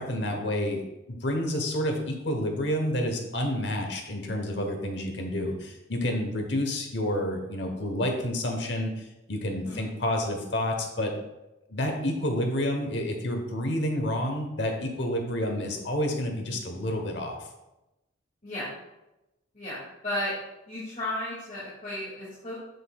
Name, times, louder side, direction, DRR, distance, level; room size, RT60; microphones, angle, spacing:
voice 1, 0.0-11.1 11.7-17.4, left 1 dB, 65° left, 4 dB, 1.0 m, -29 dB
voice 2, 19.5-20.3 20.7-22.5, left 1 dB, 45° left, -9 dB, 2.2 m, -34 dB
8.0 x 6.5 x 2.3 m, 0.96 s
head